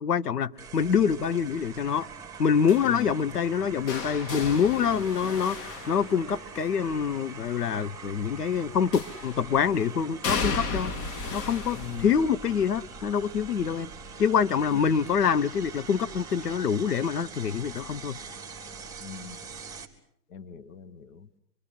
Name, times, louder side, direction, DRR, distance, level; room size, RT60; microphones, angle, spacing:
voice 1, 0.0-2.1 2.4-10.9 11.3-13.9 14.2-18.2, left 7 dB, 75° left, 1.0 m, -26 dB
sound 1, 0.6-19.8, right 5 dB, 5° right, 3.4 m, -43 dB
sound 2, 2.7-6.7 8.9-9.5 10.2-16.0 16.4-16.8 18.0-18.1, left 4 dB, 30° left, 1.8 m, -36 dB
voice 2, 2.8-3.1 4.9-5.1 11.7-12.1 14.7-14.8 19.0-19.4 20.3-21.3, left 7 dB, 60° left, 1.7 m, -39 dB
27.0 x 24.0 x 7.7 m
figure-of-eight pair, 110°, 47 cm